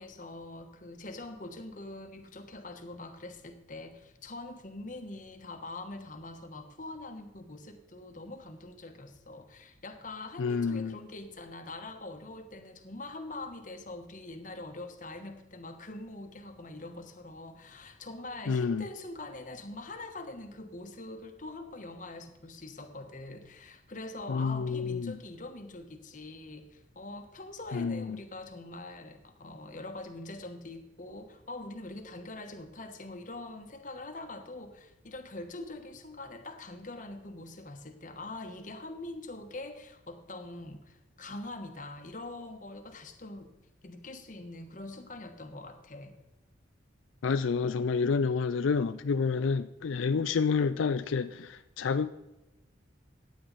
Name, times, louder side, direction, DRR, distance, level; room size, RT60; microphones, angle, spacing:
voice 1, 0.0-43.5 43.8-46.1, left 2 dB, 40° left, 1.2 m, -43 dB
voice 2, 10.4-10.9 18.5-18.8 24.3-25.2 27.7-28.2 47.2-52.1, left 5 dB, 85° left, 0.4 m, -29 dB
15.0 x 9.6 x 4.1 m
head